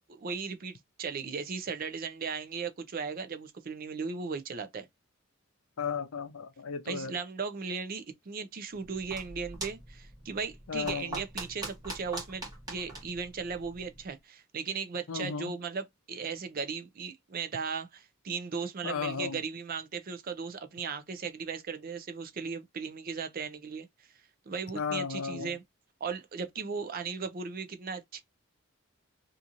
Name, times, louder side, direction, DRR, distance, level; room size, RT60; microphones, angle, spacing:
voice 1, 0.0-4.9 6.9-23.9 24.5-25.6 26.0-28.2, right 5 dB, 40° right, 0.4 m, -37 dB
voice 2, 5.8-7.1 10.7-11.2 15.1-15.5 18.8-19.4 24.8-25.5, left 6 dB, 75° left, 0.5 m, -34 dB
sound 1, 8.7-14.1, right 1 dB, 20° right, 1.3 m, -43 dB
2.8 x 2.5 x 2.4 m
head